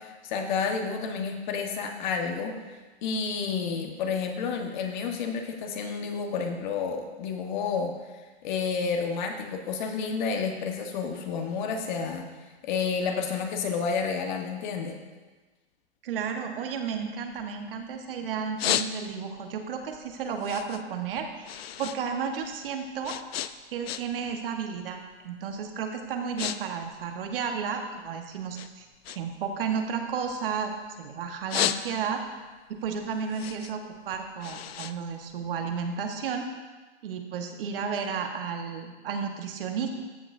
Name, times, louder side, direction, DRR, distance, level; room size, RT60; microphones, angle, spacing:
voice 1, 0.0-2.5 3.0-7.9 8.4-12.2 12.6-15.0, left 5 dB, 45° left, 4 dB, 1.3 m, -30 dB
voice 2, 16.0-23.2 23.7-28.9 29.1-32.2 32.7-36.5 37.0-39.9, right 6 dB, 55° right, 4 dB, 1.3 m, -32 dB
sound 1, 16.8-18.0 18.3-19.4 19.8-22.0 22.3-24.3 24.6-25.0 25.6-25.7 26.0-26.6 26.8-28.1 28.5-30.9 31.3-32.3 32.7-35.8, left 11 dB, 65° left, 0.5 m, -33 dB
14.0 x 7.1 x 2.6 m, 1.3 s
hypercardioid pair, 135°, 33 cm